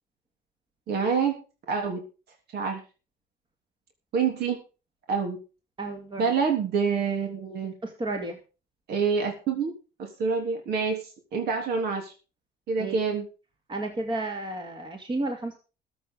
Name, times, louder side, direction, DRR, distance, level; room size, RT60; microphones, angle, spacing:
voice 1, 0.9-1.4 1.7-2.0 2.5-2.8 4.1-4.6 5.1-5.4 6.2-7.7 8.9-9.7 10.0-12.1 12.7-13.3, right 5 dB, 70° right, 3 dB, 3.4 m, -27 dB
voice 2, 5.8-6.2 7.8-8.4 12.8-13.0 13.7-15.6, right 2 dB, 30° right, 4 dB, 2.6 m, -32 dB
21.5 x 8.0 x 3.9 m, 0.34 s
cardioid pair, 110°, 17 cm